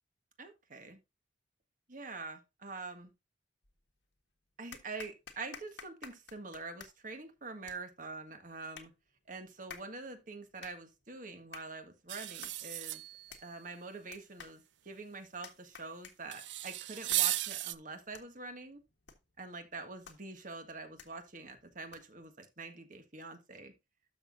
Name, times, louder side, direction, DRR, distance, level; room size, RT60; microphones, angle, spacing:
voice 1, 0.4-1.0 1.9-3.1 4.6-8.9 9.3-13.0 13.4-18.8 19.4-23.7, right 3 dB, 45° right, 7 dB, 1.7 m, -45 dB
sound 1, 3.6-4.2 4.7-22.3, left 6 dB, 75° left, 1.6 m, -55 dB
sound 2, 12.1-13.4 16.3-17.7, right 15 dB, 80° right, 0.5 m, -35 dB
12.5 x 6.2 x 2.5 m, 0.24 s
head